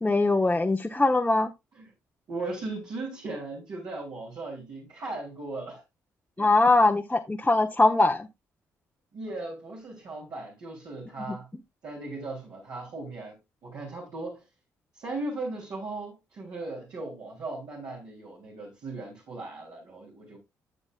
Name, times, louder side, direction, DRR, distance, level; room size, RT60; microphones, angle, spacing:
voice 1, 0.0-1.5 6.4-8.3 11.3-11.4, left 2 dB, 15° left, 1.1 m, -22 dB
voice 2, 2.3-5.8 6.4-6.5 7.4-7.5 9.1-11.5 11.8-13.3 13.6-14.4 14.9-20.4, right 2 dB, 55° right, 3.6 m, -37 dB
10.5 x 8.6 x 2.5 m
figure-of-eight pair, 45°, 8 cm